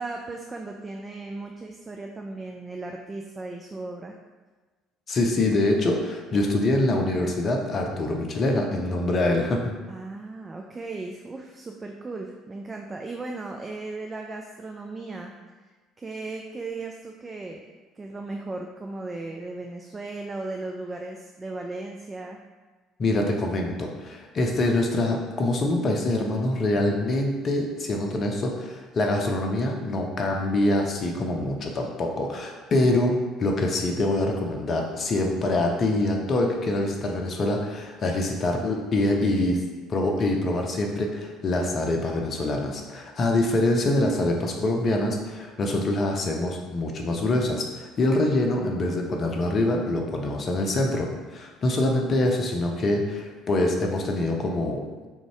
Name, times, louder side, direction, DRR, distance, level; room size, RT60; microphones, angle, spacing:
voice 1, 0.0-4.2 9.9-15.3 16.0-17.7 18.0-22.4, right 3 dB, 25° right, 2 dB, 0.3 m, -36 dB
voice 2, 5.1-9.6 23.0-39.6 39.9-55.1, left 2 dB, 40° left, 2 dB, 0.6 m, -25 dB
3.5 x 2.6 x 3.1 m, 1.3 s
figure-of-eight pair, 55°, 0 cm